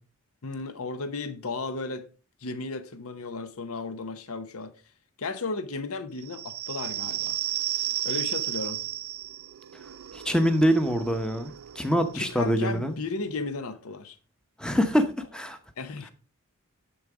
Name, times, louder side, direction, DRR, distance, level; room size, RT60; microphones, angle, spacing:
voice 1, 0.4-2.1 2.4-4.7 5.2-7.4 8.0-8.8 12.1-14.2 15.8-16.1, left 3 dB, 75° left, 0.9 m, -34 dB
sound 1, 6.2-13.5, right 14 dB, 70° right, 0.4 m, -34 dB
voice 2, 10.1-12.9 14.6-15.6, equal, 5° left, 0.8 m, -25 dB
10.0 x 4.0 x 4.8 m
head